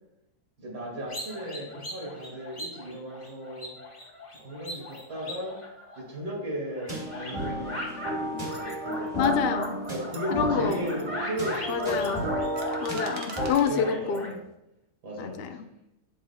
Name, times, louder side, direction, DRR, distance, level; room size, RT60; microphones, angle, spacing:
voice 1, 0.6-3.8 4.4-5.6 6.0-9.1 9.9-12.5 13.4-14.4 15.0-15.6, equal, 80° right, -2 dB, 2.8 m, -36 dB
sound 1, 1.1-6.3 6.7-8.1 8.5-14.3, left 1 dB, 35° left, 2.6 m, -38 dB
sound 2, 6.9-13.5, right 1 dB, 25° right, 1.8 m, -33 dB
sound 3, 8.5-9.3 9.6-10.3 10.7-11.0 11.4-13.7 14.1-14.4, right 4 dB, 60° right, 1.3 m, -46 dB
voice 2, 9.1-9.8 10.3-10.9 11.7-12.3 12.8-14.3 15.2-15.7, left 7 dB, 75° left, 8 dB, 0.5 m, -27 dB
7.6 x 7.5 x 2.2 m, 0.88 s
omnidirectional pair, 1.7 m